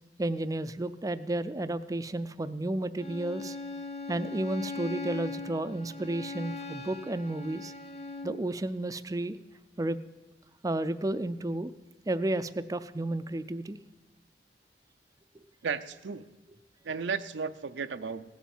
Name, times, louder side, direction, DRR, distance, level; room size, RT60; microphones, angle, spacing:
voice 1, 0.2-3.6 4.1-7.7 8.2-9.4 9.8-10.0 10.6-11.7 12.1-13.8, right 1 dB, 20° right, 13 dB, 0.4 m, -32 dB
Bowed string instrument, 3.0-8.4, left 3 dB, 35° left, 1.1 m, -40 dB
voice 2, 15.6-16.3 16.8-18.2, right 5 dB, 85° right, 10 dB, 0.5 m, -34 dB
17.0 x 7.3 x 7.1 m, 1.2 s
head